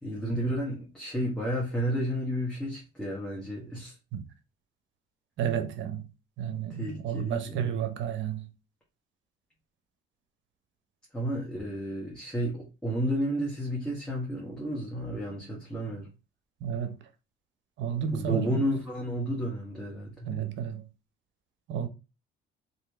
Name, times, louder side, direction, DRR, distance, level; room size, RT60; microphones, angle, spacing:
voice 1, 0.0-3.9 6.7-7.9 11.1-16.1 18.1-20.3, equal, 5° left, 1.1 m, -32 dB
voice 2, 5.4-6.1 6.4-8.5 16.6-17.0 17.8-18.6 20.3-20.8 21.7-21.9, right 8 dB, 65° right, 0.7 m, -31 dB
2.9 x 2.7 x 3.4 m
cardioid pair, 100°, 21 cm